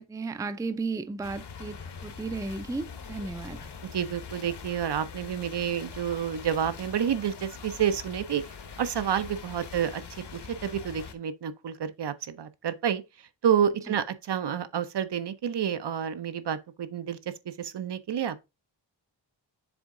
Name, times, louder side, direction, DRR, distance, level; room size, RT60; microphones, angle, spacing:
voice 1, 0.0-3.7 13.9-14.0, right 3 dB, 10° right, 0.4 m, -34 dB
sound 1, 1.2-11.1, left 6 dB, 65° left, 1.1 m, -43 dB
voice 2, 3.8-8.4 8.8-10.0 10.3-13.0 13.4-17.2 17.6-18.4, right 8 dB, 65° right, 0.7 m, -29 dB
7.1 x 3.6 x 3.7 m
wide cardioid pair, 95°, 44 cm